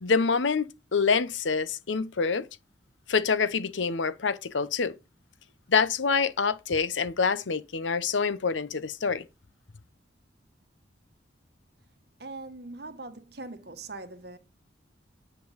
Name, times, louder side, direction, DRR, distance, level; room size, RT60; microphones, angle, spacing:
voice 1, 0.0-2.5 3.1-4.9 5.7-9.2, left 5 dB, 80° left, 0.7 m, -26 dB
voice 2, 12.2-14.4, right 2 dB, 55° right, 1.3 m, -41 dB
9.6 x 6.1 x 5.0 m
head